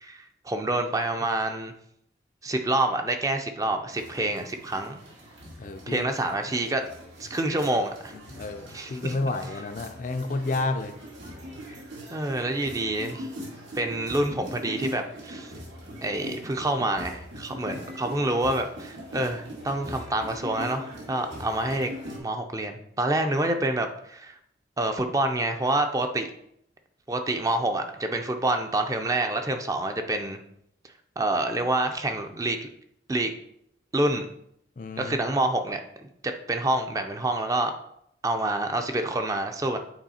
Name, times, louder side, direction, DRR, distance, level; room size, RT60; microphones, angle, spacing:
voice 1, 0.0-1.7 2.4-5.0 5.9-6.8 7.2-8.1 8.7-9.2 12.1-13.3 13.8-15.5 16.0-21.9 22.2-24.4 24.8-26.3 27.1-30.4 31.2-32.7 33.1-33.3 33.9-34.3 35.0-35.8 36.5-37.7 38.2-39.8, right 2 dB, 20° right, 6 dB, 0.4 m, -27 dB
sound 1, 3.9-22.2, equal, 85° right, 2.1 m, -41 dB
voice 2, 5.6-6.1 8.3-10.9 34.8-35.2, left 3 dB, 45° left, 8 dB, 0.4 m, -30 dB
8.7 x 3.2 x 4.2 m, 0.74 s
head